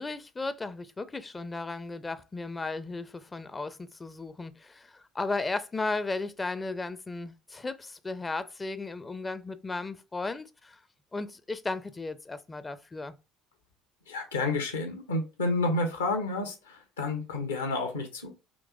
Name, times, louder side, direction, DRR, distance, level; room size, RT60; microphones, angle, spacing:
voice 1, 0.0-10.8 11.1-13.1, left 3 dB, 20° left, 0.4 m, -35 dB
voice 2, 14.1-18.3, left 2 dB, 75° left, 0.9 m, -30 dB
5.1 x 3.0 x 2.3 m
figure-of-eight pair, 60°, 0 cm